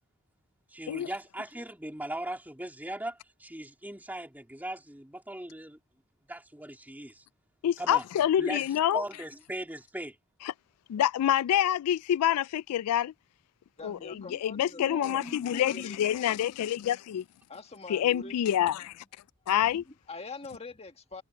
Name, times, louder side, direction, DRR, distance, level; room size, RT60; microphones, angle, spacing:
voice 1, 0.7-5.8 6.3-7.2 7.8-8.0 8.4-8.6 8.9-10.2, right 1 dB, 10° right, 2.8 m, -39 dB
voice 2, 7.6-9.0 10.9-13.1 13.8-17.2 17.9-19.0 19.5-19.8, left 11 dB, 85° left, 0.3 m, -27 dB
voice 3, 13.8-16.3 17.5-18.7 19.6-21.2, left 2 dB, 30° left, 1.8 m, -44 dB
head